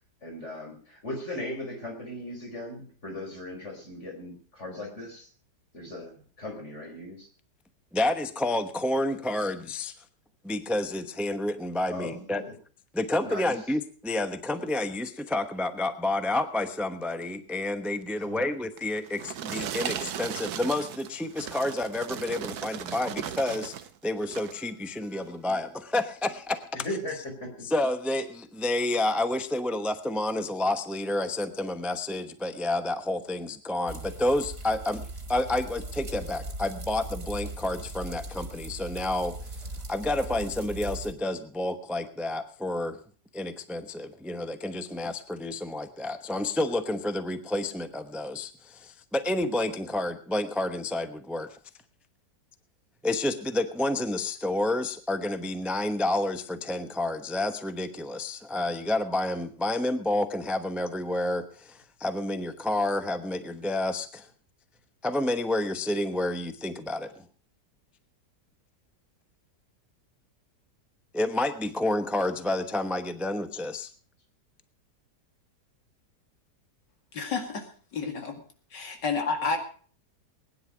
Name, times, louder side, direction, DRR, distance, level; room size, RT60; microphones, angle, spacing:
voice 1, 0.2-5.3 5.7-7.3 11.9-12.5 13.2-13.4 18.2-18.5 26.8-27.7, left 1 dB, 40° left, 1 dB, 4.9 m, -38 dB
voice 2, 7.9-9.9 10.4-12.4 12.9-23.7 24.0-26.6 27.6-39.4 39.9-43.0 43.3-51.6 53.0-64.3 65.0-67.2 71.1-73.9, left 1 dB, ahead, 9 dB, 0.6 m, -29 dB
sound 1, 18.8-23.9 24.2-24.7 25.2-25.4, right 10 dB, 65° right, 1.3 m, -37 dB
sound 2, 33.9-41.1, right 1 dB, 35° right, 2.2 m, -39 dB
voice 3, 77.1-77.7 77.9-78.4 78.7-79.6, left 4 dB, 90° left, 5 dB, 2.8 m, -30 dB
20.0 x 10.0 x 5.0 m, 0.43 s
omnidirectional pair, 1.8 m